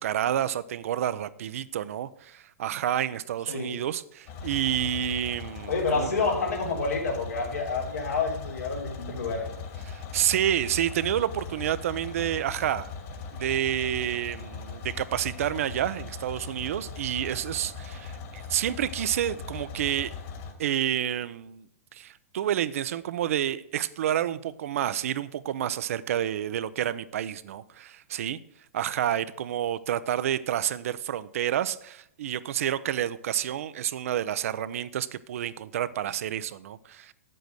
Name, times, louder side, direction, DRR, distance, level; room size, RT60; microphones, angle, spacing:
voice 1, 0.0-6.1 9.8-12.9 13.3-20.1 20.6-21.6 21.9-28.4 28.7-37.1, right 10 dB, 65° right, 0.7 m, -29 dB
sound 1, 4.3-20.5, left 5 dB, 50° left, 2.7 m, -40 dB
voice 2, 5.7-9.5, left 4 dB, 85° left, 3.7 m, -28 dB
9.0 x 7.7 x 6.3 m
hypercardioid pair, 115°, 8 cm